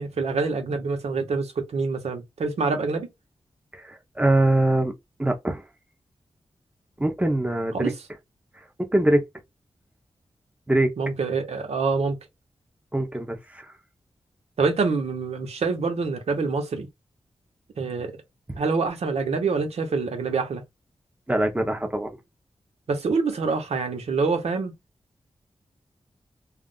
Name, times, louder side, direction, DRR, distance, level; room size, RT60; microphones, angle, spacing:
voice 1, 0.0-3.1 7.7-8.0 11.0-12.2 14.6-16.9 17.8-18.2 18.6-20.6 22.9-24.7, right 4 dB, 85° right, 0.8 m, -26 dB
voice 2, 3.7-4.9 5.2-5.6 7.0-7.9 8.8-9.2 10.7-10.9 12.9-13.7 21.3-22.1, right 1 dB, 15° right, 0.8 m, -23 dB
2.5 x 2.0 x 3.7 m
wide cardioid pair, 95°, 11 cm